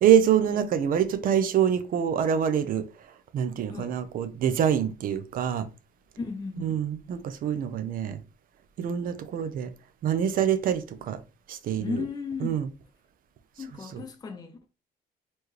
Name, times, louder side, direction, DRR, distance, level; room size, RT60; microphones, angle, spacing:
voice 1, 0.0-2.9 3.3-5.7 6.6-8.2 8.8-9.7 10.0-11.2 11.5-12.0 12.4-12.7 13.9-14.0, right 9 dB, 55° right, 0.6 m, -25 dB
voice 2, 6.2-6.8 11.8-12.6 13.6-14.7, left 4 dB, 25° left, 0.6 m, -35 dB
4.4 x 2.9 x 3.2 m
cardioid pair, 110°, 17 cm